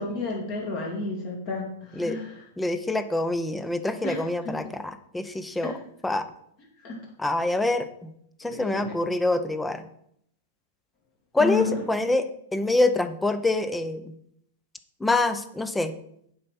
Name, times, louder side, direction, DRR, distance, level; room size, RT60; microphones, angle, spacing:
voice 1, 0.0-2.4 4.0-4.2 5.6-5.7 6.8-7.0 8.4-8.9 11.4-11.7, left 4 dB, 45° left, -1 dB, 2.7 m, -31 dB
voice 2, 2.6-5.7 6.0-6.3 7.2-8.1 8.4-9.8 11.3-12.3 12.5-14.1 15.0-15.9, left 2 dB, 10° left, 10 dB, 0.7 m, -25 dB
7.7 x 5.3 x 5.8 m, 0.71 s
figure-of-eight pair, 100°, 0 cm